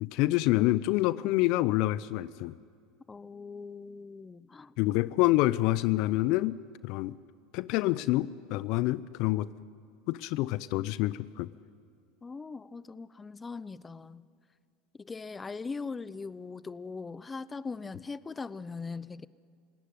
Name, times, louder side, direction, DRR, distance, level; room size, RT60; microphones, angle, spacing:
voice 1, 0.0-2.5 4.8-6.6 6.8-7.1 7.5-9.5 10.1-11.5, left 17 dB, 60° left, 18 dB, 0.6 m, -27 dB
voice 2, 3.1-4.7 12.2-14.3 15.0-19.3, left 4 dB, 20° left, 18 dB, 0.7 m, -40 dB
29.5 x 17.5 x 9.5 m, 2.2 s
hypercardioid pair, 85°, 0 cm